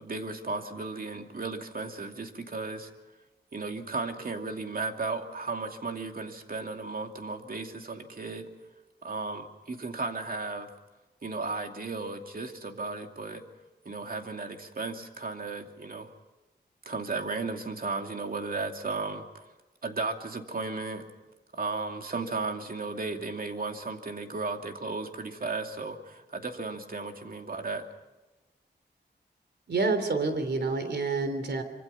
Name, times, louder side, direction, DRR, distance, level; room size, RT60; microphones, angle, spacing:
voice 1, 0.0-2.9 3.5-8.5 9.0-10.7 11.2-13.4 13.8-16.1 16.8-19.5 19.8-21.0 21.5-27.9, right 3 dB, 55° right, 4 dB, 2.7 m, -35 dB
voice 2, 29.7-31.6, right 3 dB, 75° right, 8 dB, 3.4 m, -28 dB
25.5 x 25.0 x 5.8 m, 1.1 s
wide cardioid pair, 90°, 18 cm